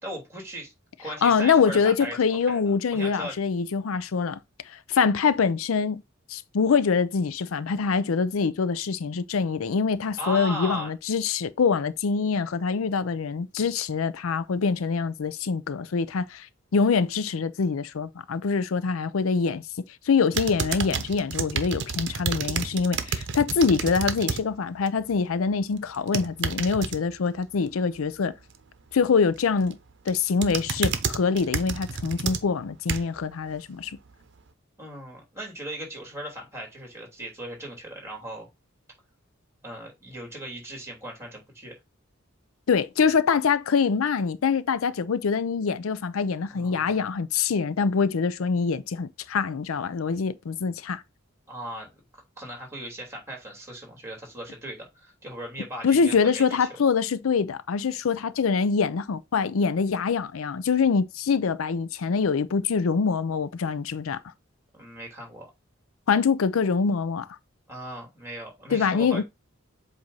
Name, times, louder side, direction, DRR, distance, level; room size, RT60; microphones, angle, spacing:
voice 1, 0.0-0.7 1.0-3.4 10.2-10.9 34.8-38.5 39.6-41.8 46.5-47.0 51.5-51.9 52.4-56.7 64.7-65.5 67.7-69.2, right 1 dB, 15° right, 2.9 m, -38 dB
voice 2, 1.2-4.4 4.7-6.0 6.3-16.5 16.7-19.6 20.0-28.3 28.9-29.8 30.1-34.0 42.7-51.0 55.8-64.2 66.1-67.3 68.7-69.2, left 5 dB, 90° left, 0.5 m, -24 dB
sound 1, 20.3-24.4 24.8-25.2 25.9-27.0 29.4-29.7 30.1-33.2 33.8-33.9, right 5 dB, 60° right, 0.8 m, -30 dB
7.9 x 2.6 x 5.4 m
head